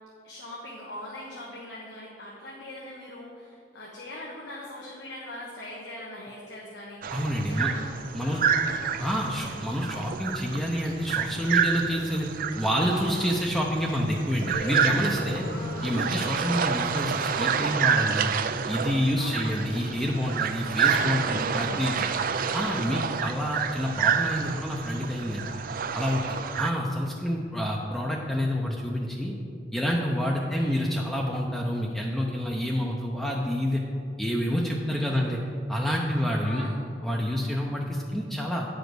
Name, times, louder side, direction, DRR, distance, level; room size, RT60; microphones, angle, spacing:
voice 1, 0.2-7.1 7.5-7.9 8.2-8.8 15.3-16.0 19.2-19.6 21.0-22.1 26.1-26.5 30.4-30.8 34.9-35.4 36.1-36.7, left 1 dB, 90° left, -4 dB, 1.2 m, -41 dB
sound 1, 7.0-26.7, right 7 dB, 50° right, 0.4 m, -29 dB
voice 2, 7.1-7.7 8.1-8.4 9.0-12.3 12.6-15.4 15.8-18.3 18.7-22.1 22.5-25.4 25.9-29.3 29.7-33.8 34.2-35.4 35.7-36.7 37.0-38.7, equal, ahead, -2 dB, 0.6 m, -28 dB
sound 2, 14.5-18.6, left 1 dB, 55° left, 0.7 m, -37 dB
9.1 x 5.1 x 6.1 m, 2.4 s
head